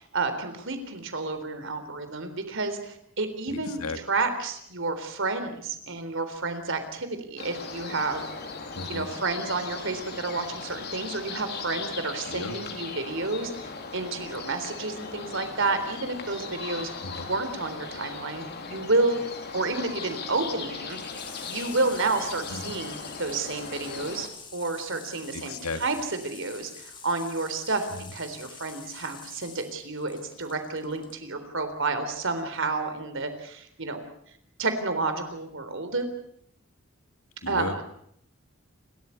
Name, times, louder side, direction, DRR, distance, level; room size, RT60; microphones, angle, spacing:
voice 1, 0.0-3.8 4.1-8.2 8.9-13.7 13.9-16.9 17.3-19.2 19.5-21.0 21.4-24.3 24.5-34.0 34.6-36.1 37.5-37.8, right 3 dB, 60° right, 8 dB, 3.7 m, -30 dB
voice 2, 3.5-4.0 8.8-9.1 12.3-12.6 17.0-17.3 22.5-22.7 25.3-25.8 27.9-28.0 37.4-37.8, left 3 dB, 80° left, 8 dB, 2.1 m, -35 dB
sound 1, 7.4-24.3, left 4 dB, 50° left, 3.2 m, -38 dB
Water tap faucet / Sink (filling or washing), 19.3-31.2 32.5-32.6, left 5 dB, 20° left, 2.8 m, -47 dB
29.5 x 13.5 x 8.4 m, 0.69 s
head